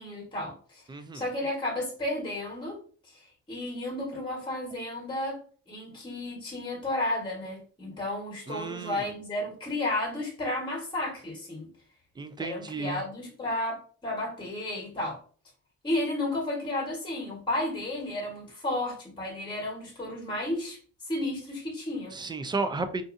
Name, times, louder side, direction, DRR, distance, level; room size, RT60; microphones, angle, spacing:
voice 1, 0.0-0.8 1.1-2.8 3.5-5.4 5.7-11.7 12.4-15.2 15.8-20.8 21.1-22.2, left 1 dB, 15° left, -3 dB, 1.2 m, -32 dB
voice 2, 0.9-1.2 8.5-9.1 12.2-13.0 22.1-23.0, right 3 dB, 15° right, 10 dB, 0.3 m, -33 dB
2.5 x 2.4 x 2.5 m, 0.43 s
cardioid pair, 90°, 30 cm